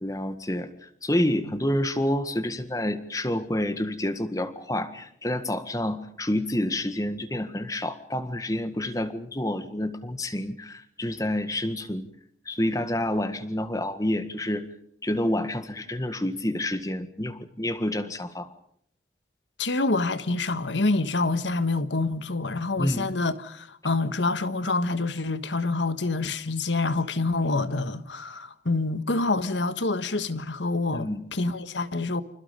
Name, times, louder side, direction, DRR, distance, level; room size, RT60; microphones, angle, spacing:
voice 1, 0.0-12.1 12.4-14.6 15.0-18.6 22.8-23.1 30.9-31.2, left 1 dB, 20° left, 1.7 m, -28 dB
voice 2, 19.6-32.2, left 3 dB, 85° left, 1.5 m, -27 dB
29.0 x 26.5 x 5.3 m
head